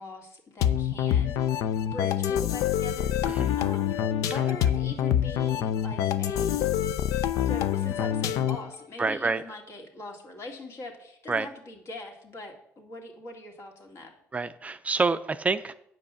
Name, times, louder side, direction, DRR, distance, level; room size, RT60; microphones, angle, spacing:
voice 1, 0.0-3.3 3.5-4.0 4.2-6.7 7.4-14.1, left 2 dB, 55° left, 3 dB, 2.2 m, -42 dB
sound 1, 0.6-8.7, left 10 dB, 80° left, 0.5 m, -26 dB
voice 2, 3.2-3.6 9.0-9.4 11.3-11.5 14.3-15.7, right 4 dB, 25° right, 12 dB, 0.4 m, -27 dB
8.9 x 5.3 x 6.9 m, 0.75 s
cardioid pair, 90°, 5 cm